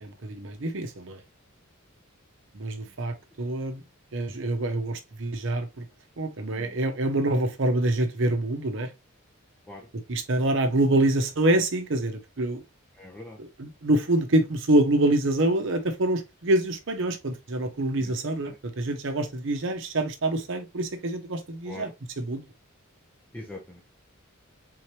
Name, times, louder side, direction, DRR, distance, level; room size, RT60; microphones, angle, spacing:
voice 1, 0.0-1.2 2.5-3.8 4.1-5.8 6.2-8.9 9.9-12.6 13.4-21.9 22.2-22.5, right 1 dB, 60° right, 0.7 m, -26 dB
voice 2, 13.0-13.4 18.0-18.3 21.7-21.8 23.3-23.8, left 2 dB, 10° left, 0.7 m, -42 dB
3.8 x 3.0 x 3.0 m
head